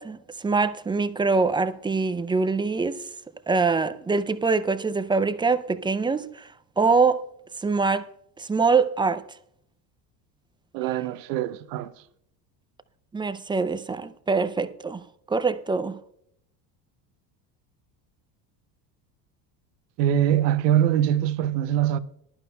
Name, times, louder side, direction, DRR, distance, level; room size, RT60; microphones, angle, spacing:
voice 1, 0.0-3.0 3.5-6.5 6.8-7.2 7.6-8.1 8.4-9.2 13.1-16.0, right 4 dB, 10° right, 0.4 m, -24 dB
voice 2, 10.7-11.9 20.0-22.0, right 11 dB, 80° right, 0.8 m, -23 dB
19.5 x 11.5 x 2.3 m
supercardioid pair, 90°, 48 cm